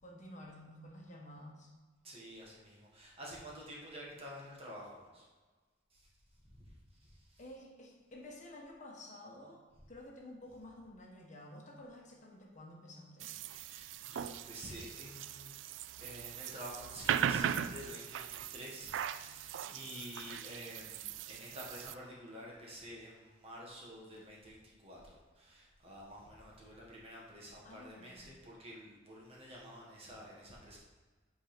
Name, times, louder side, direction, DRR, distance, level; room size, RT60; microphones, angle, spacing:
voice 1, 0.0-1.7 7.4-9.6 9.9-13.3 27.6-28.2, left 1 dB, 40° left, -1 dB, 1.3 m, -51 dB
voice 2, 2.0-5.3 5.9-6.0 7.0-7.4 13.5-15.6 16.0-30.8, equal, 30° right, -4 dB, 1.8 m, -50 dB
sound 1, 13.2-21.9, right 9 dB, 80° right, 0.3 m, -39 dB
8.8 x 3.8 x 5.1 m, 1.4 s
head